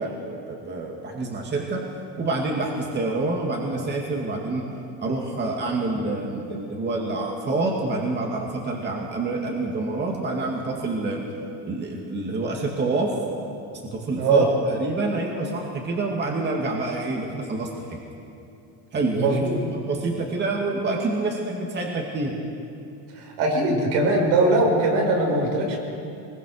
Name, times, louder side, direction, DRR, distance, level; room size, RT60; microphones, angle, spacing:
voice 1, 0.0-1.9 2.2-4.6 5.0-11.2 11.6-13.1 13.8-18.0 18.9-19.4 19.7-22.3, right 2 dB, 25° right, -1 dB, 2.3 m, -27 dB
voice 2, 14.2-14.5 19.2-19.6 23.1-25.8, right 2 dB, 75° right, 1 dB, 5.6 m, -21 dB
22.5 x 21.5 x 6.6 m, 2.8 s
cardioid pair, 160°, 41 cm